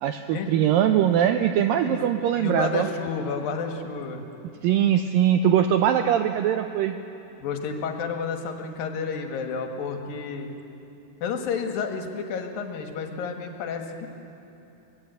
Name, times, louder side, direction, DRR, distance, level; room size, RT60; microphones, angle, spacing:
voice 1, 0.0-2.9 4.6-7.0, right 10 dB, 90° right, 7 dB, 2.0 m, -21 dB
voice 2, 2.4-4.2 7.4-10.5 11.2-14.1, left 5 dB, 65° left, 4 dB, 3.0 m, -31 dB
23.5 x 18.5 x 8.2 m, 2.8 s
omnidirectional pair, 4.8 m